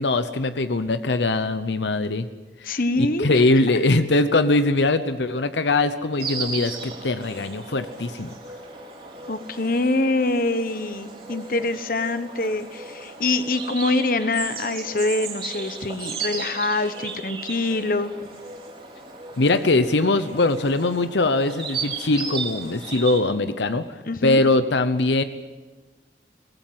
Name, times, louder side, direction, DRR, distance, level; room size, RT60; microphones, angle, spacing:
voice 1, 0.0-2.3 2.6-8.3 19.4-23.9 24.2-25.2, left 2 dB, 80° left, 11 dB, 0.9 m, -21 dB
voice 2, 2.6-3.6 9.3-18.1 24.1-24.4, left 2 dB, 50° left, 11 dB, 1.2 m, -25 dB
Insect, 6.2-23.2, right 4 dB, 35° right, 4.3 m, -35 dB
23.5 x 19.0 x 7.6 m, 1.3 s
head